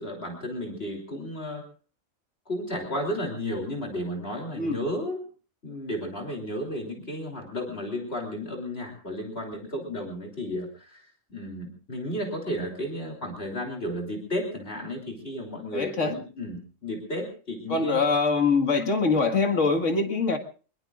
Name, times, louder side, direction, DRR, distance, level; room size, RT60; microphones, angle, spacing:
voice 1, 0.0-1.6 2.5-5.2 5.6-11.1 11.3-18.0, equal, 50° left, 3.5 m, -33 dB
voice 2, 15.7-16.1 17.7-20.4, left 4 dB, 65° left, 2.3 m, -23 dB
24.5 x 21.5 x 2.5 m
omnidirectional pair, 1.4 m